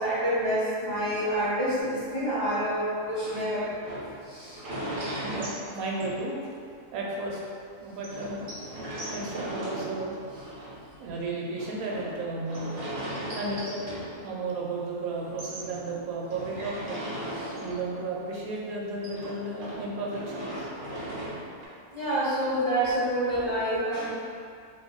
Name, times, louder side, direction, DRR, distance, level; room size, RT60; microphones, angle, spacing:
voice 1, 0.0-3.7 4.2-4.6 17.4-17.5 21.9-24.1, right 1 dB, 20° left, -13 dB, 1.0 m, -28 dB
sound 1, 1.8-6.7 7.1-7.2 7.5-7.6 8.0-14.8 15.1-18.2 18.5-21.7, right 1 dB, 50° right, 0.6 m, -38 dB
voice 2, 5.2-6.4 6.9-7.4 7.8-8.5 9.1-10.2 11.0-12.8 13.3-13.8 14.2-17.1 17.6-20.7, right 2 dB, 80° right, -3 dB, 1.0 m, -33 dB
2.7 x 2.5 x 3.7 m, 2.3 s
omnidirectional pair, 1.5 m